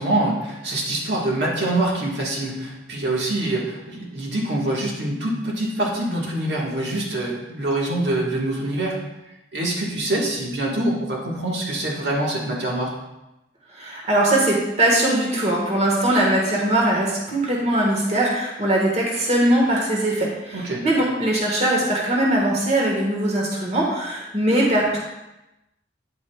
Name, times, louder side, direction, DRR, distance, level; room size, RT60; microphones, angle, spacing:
voice 1, 0.0-9.0 9.5-12.9 20.5-20.8, right 1 dB, 75° right, -3 dB, 1.6 m, -25 dB
voice 2, 13.7-25.0, right 1 dB, 40° right, -2 dB, 1.6 m, -21 dB
9.4 x 8.4 x 2.4 m, 0.96 s
head